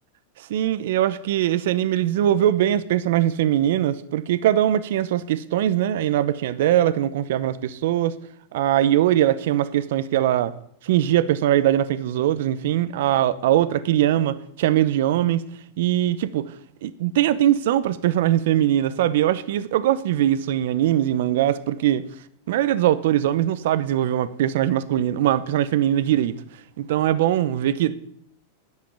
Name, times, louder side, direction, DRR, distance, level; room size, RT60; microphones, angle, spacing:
voice 1, 0.5-8.1 8.5-10.5 10.8-15.4 15.8-16.5 16.8-22.0 22.5-26.3 26.8-28.0, right 12 dB, 70° right, 0.7 m, -21 dB
10.5 x 7.7 x 6.9 m
supercardioid pair, 130°, 0 cm